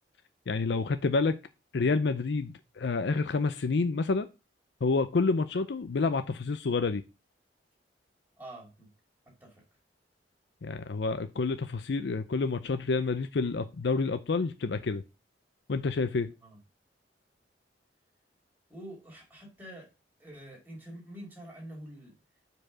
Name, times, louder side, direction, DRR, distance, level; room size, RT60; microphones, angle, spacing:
voice 1, 0.5-1.4 1.7-4.3 4.8-7.0 10.6-15.0 15.7-16.3, left 4 dB, 70° left, 0.5 m, -28 dB
voice 2, 8.4-8.9 9.3-9.6 16.4-16.6 18.7-19.9 20.2-22.1, right 1 dB, 10° right, 2.5 m, -46 dB
5.0 x 4.6 x 6.1 m
head